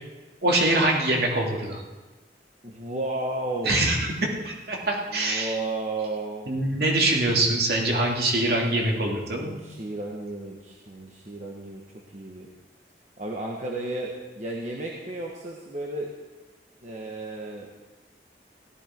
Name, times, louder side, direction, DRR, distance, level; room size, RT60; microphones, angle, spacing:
voice 1, 0.4-1.8 3.6-4.1 4.4-5.6 6.5-9.6, right 1 dB, 60° right, -1 dB, 2.7 m, -24 dB
voice 2, 2.6-3.8 5.1-6.5 8.7-11.8 12.1-12.5 13.2-16.1 16.8-17.7, right 2 dB, 40° right, -2 dB, 1.4 m, -33 dB
16.5 x 13.5 x 4.6 m, 1.2 s
head